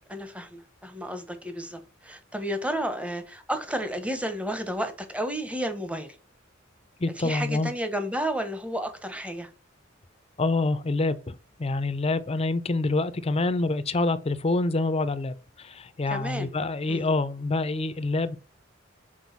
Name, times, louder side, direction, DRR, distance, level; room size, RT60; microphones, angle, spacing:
voice 1, 0.1-6.2 7.2-9.5 16.1-16.5 16.9-17.1, equal, 5° right, 1.0 m, -32 dB
voice 2, 7.0-7.7 10.4-18.4, left 2 dB, 30° left, 0.6 m, -26 dB
6.2 x 4.4 x 4.1 m
head